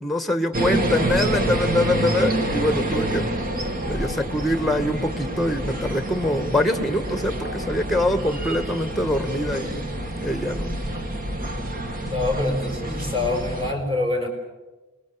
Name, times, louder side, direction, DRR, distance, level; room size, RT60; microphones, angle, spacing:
voice 1, 0.0-3.3 3.8-10.8, left 1 dB, ahead, 9 dB, 1.6 m, -24 dB
sound 1, 0.5-13.7, right 1 dB, 40° right, 2.6 m, -27 dB
voice 2, 12.0-14.3, left 2 dB, 25° right, 2 dB, 6.1 m, -25 dB
28.0 x 21.0 x 6.9 m, 1.2 s
head